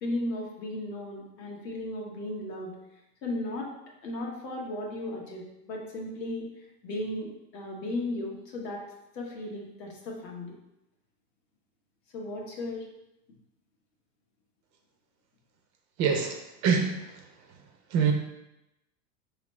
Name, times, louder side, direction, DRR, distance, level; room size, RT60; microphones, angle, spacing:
voice 1, 0.0-2.7 3.2-3.7 4.0-6.5 6.8-8.8 9.1-10.5 12.1-12.8, left 1 dB, 90° left, -1 dB, 1.4 m, -35 dB
voice 2, 16.0-16.4 16.6-17.0 17.9-18.1, right 6 dB, 35° right, 3 dB, 0.7 m, -24 dB
5.1 x 3.1 x 3.1 m, 0.90 s
hypercardioid pair, 125°, 48 cm